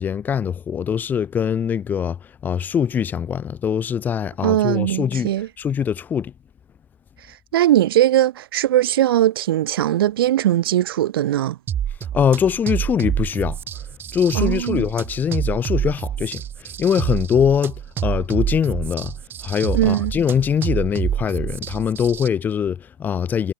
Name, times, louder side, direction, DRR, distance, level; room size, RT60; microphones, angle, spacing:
voice 1, 0.0-6.3 12.1-13.6 14.1-17.7 18.0-19.2 19.4-23.5, left 8 dB, 15° left, 1.5 m, -22 dB
voice 2, 4.4-5.5 7.5-11.6 14.3-14.9 19.7-20.1, right 13 dB, 75° right, 1.6 m, -19 dB
sound 1, 11.7-22.3, right 9 dB, 15° right, 1.4 m, -27 dB
supercardioid pair, 170°, 12 cm